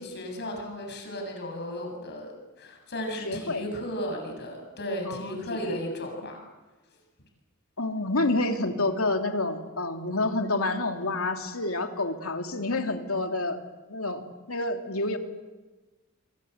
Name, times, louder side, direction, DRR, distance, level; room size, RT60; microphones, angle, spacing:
voice 1, 0.0-6.4, equal, 55° left, 3 dB, 7.6 m, -35 dB
voice 2, 3.2-3.6 5.0-5.8 7.8-13.6 13.9-15.2, left 2 dB, 85° left, 4 dB, 2.9 m, -28 dB
29.0 x 23.0 x 8.1 m, 1.2 s
head